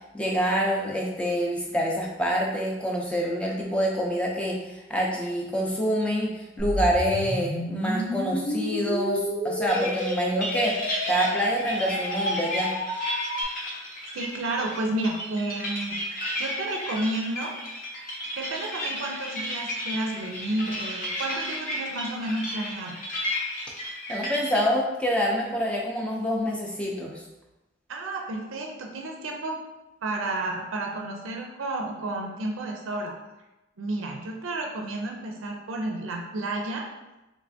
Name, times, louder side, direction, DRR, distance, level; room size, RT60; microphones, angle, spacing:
voice 1, 0.1-12.7 24.1-27.2, equal, 5° left, -2 dB, 0.4 m, -26 dB
sound 1, 6.6-13.4, left 1 dB, 90° left, 0.7 m, -30 dB
sound 2, 9.7-24.7, equal, 40° left, 0.7 m, -33 dB
voice 2, 14.1-16.0 16.4-17.5 18.3-23.0 27.9-29.6 30.0-33.1 33.8-36.9, right 2 dB, 85° right, 0 dB, 0.5 m, -31 dB
3.3 x 3.1 x 2.6 m, 1.0 s
head